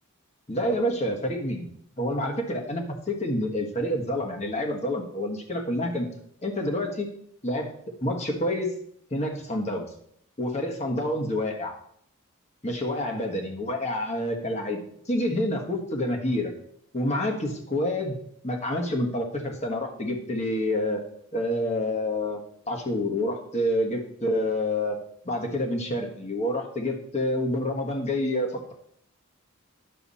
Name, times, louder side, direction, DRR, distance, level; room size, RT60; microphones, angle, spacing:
voice 1, 0.5-1.7 2.0-6.1 6.4-7.1 7.4-7.7 8.0-8.7 9.1-9.9 10.4-11.7 12.6-16.5 16.9-18.1 18.4-21.0 21.3-25.0 25.2-28.7, left 1 dB, 30° left, 2 dB, 1.5 m, -28 dB
11.0 x 6.9 x 4.2 m, 0.67 s
head